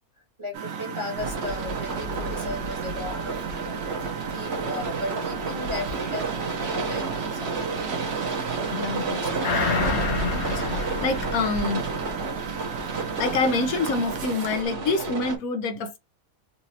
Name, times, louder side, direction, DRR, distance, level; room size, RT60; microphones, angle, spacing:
voice 1, 0.4-8.4, left 2 dB, 20° right, 1.2 m, -36 dB
Engine, 0.5-14.6, right 7 dB, 70° right, 1.1 m, -35 dB
sound 1, 1.2-15.4, right 3 dB, 50° right, 1.2 m, -31 dB
voice 2, 8.7-11.8 13.2-16.0, left 3 dB, 75° left, 1.1 m, -27 dB
sound 2, 9.4-12.3 12.7-12.8, left 4 dB, 55° left, 1.2 m, -28 dB
4.1 x 2.5 x 2.8 m
omnidirectional pair, 1.5 m